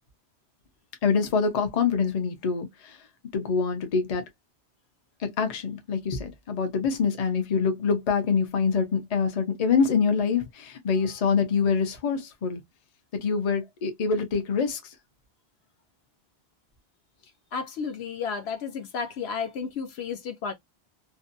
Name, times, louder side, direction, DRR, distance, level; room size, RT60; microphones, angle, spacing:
voice 1, 1.0-3.0 3.3-4.2 5.2-12.6 13.2-14.9, left 5 dB, 45° left, 0.6 m, -25 dB
voice 2, 17.5-20.5, left 6 dB, 70° left, 0.9 m, -32 dB
2.6 x 2.1 x 2.5 m
omnidirectional pair, 1.1 m